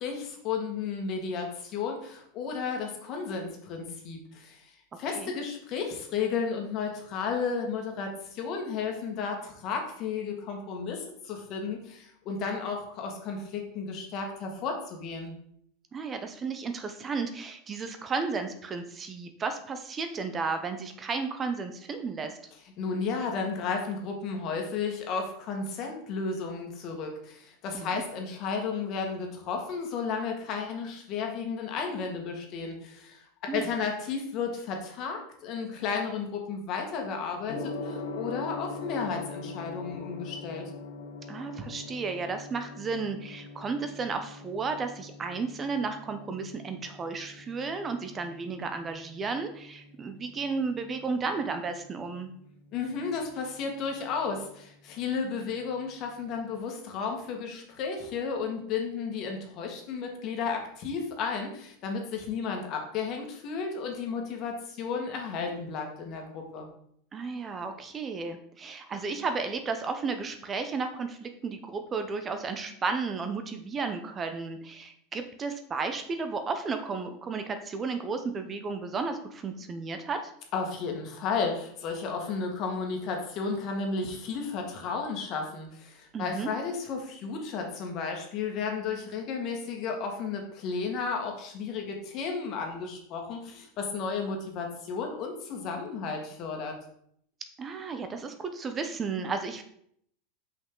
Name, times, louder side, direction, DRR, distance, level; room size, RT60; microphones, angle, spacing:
voice 1, 0.0-4.6 5.0-15.3 22.8-33.3 33.5-40.7 52.7-66.7 80.5-96.7, left 5 dB, 45° left, 2 dB, 1.7 m, -33 dB
voice 2, 15.9-22.4 27.7-28.0 33.5-33.6 41.3-52.3 67.1-80.3 86.1-86.5 97.6-99.6, right 4 dB, 25° right, 8 dB, 0.7 m, -33 dB
Gong, 37.5-56.5, left 3 dB, 85° left, 1.1 m, -44 dB
5.6 x 5.5 x 3.8 m, 0.68 s
supercardioid pair, 120°, 0 cm